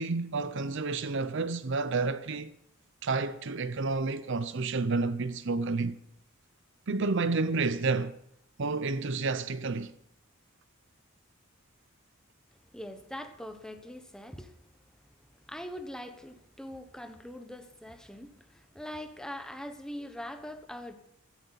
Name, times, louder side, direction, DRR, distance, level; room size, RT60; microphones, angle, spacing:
voice 1, 0.0-2.5 3.0-6.0 6.9-8.2 8.6-9.9, right 3 dB, 60° right, 0.6 m, -30 dB
voice 2, 12.7-14.6 15.5-20.9, left 1 dB, 5° left, 1.1 m, -42 dB
16.5 x 14.0 x 4.1 m
head